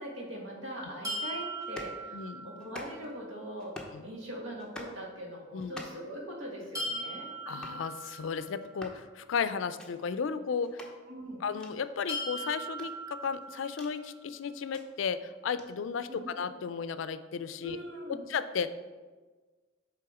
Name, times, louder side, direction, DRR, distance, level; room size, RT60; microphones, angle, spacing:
voice 1, 0.0-3.7 4.0-7.3 11.1-11.4 16.1-16.2 17.6-18.2, equal, 75° right, -1 dB, 1.5 m, -41 dB
sound 1, 1.0-3.0 6.7-8.8 12.1-14.1, right 1 dB, 15° right, 1.1 m, -39 dB
sound 2, 1.6-2.0 2.6-3.2 3.6-4.0 4.6-5.0 5.6-6.1 6.6-6.9 7.6-7.8 8.6-9.0 9.6-9.9 10.6-10.9 11.6-11.7 12.6-13.9 14.6-14.8 15.6-15.7, left 1 dB, 5° left, 0.7 m, -47 dB
voice 2, 2.1-2.5 3.9-4.1 5.5-5.8 7.5-10.9 11.4-17.8 18.1-18.7, left 6 dB, 75° left, 13 dB, 0.4 m, -34 dB
7.7 x 3.6 x 4.8 m, 1.3 s
head